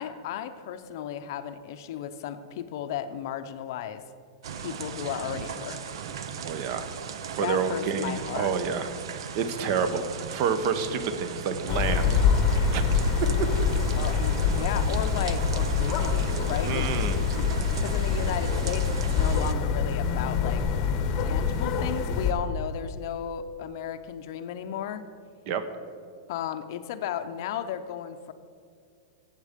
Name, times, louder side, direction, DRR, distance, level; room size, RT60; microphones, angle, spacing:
voice 1, 0.0-4.0 4.6-5.8 7.4-8.5 13.9-17.5 17.8-20.6 21.2-25.0 26.3-28.3, left 9 dB, 45° left, 9 dB, 0.6 m, -34 dB
sound 1, 4.4-19.5, right 6 dB, 65° right, 0.7 m, -37 dB
voice 2, 6.4-6.9 7.3-12.2 12.7-13.1 16.6-17.3 25.5-25.6, right 6 dB, 35° right, 10 dB, 0.8 m, -29 dB
sound 2, 11.7-22.3, left 6 dB, 25° left, 1.0 m, -25 dB
15.0 x 8.2 x 5.1 m, 2.2 s
supercardioid pair, 175°, 3 cm